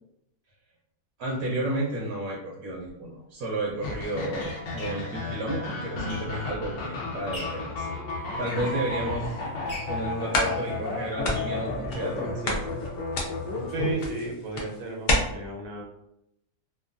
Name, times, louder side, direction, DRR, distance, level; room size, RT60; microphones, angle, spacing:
voice 1, 1.2-8.0 8.4-9.4 9.9-12.8, right 1 dB, 75° right, -3 dB, 1.1 m, -32 dB
sound 1, 2.8-2.9 3.7-6.7 7.1-7.7 8.2-9.2 9.7-12.2 12.6-12.7 12.9-13.0 13.4-13.5, left 1 dB, 25° left, 0.8 m, -44 dB
sound 2, 3.8-13.9, left 3 dB, 60° left, 0.8 m, -33 dB
sound 3, 8.1-8.9 9.4-9.5 10.0-10.1 10.3-10.9 11.2-12.2 12.4-15.1, left 1 dB, 75° left, 0.4 m, -30 dB
voice 2, 13.7-15.8, right 3 dB, 90° right, -1 dB, 1.3 m, -33 dB
2.9 x 2.3 x 2.5 m, 0.81 s
omnidirectional pair, 1.6 m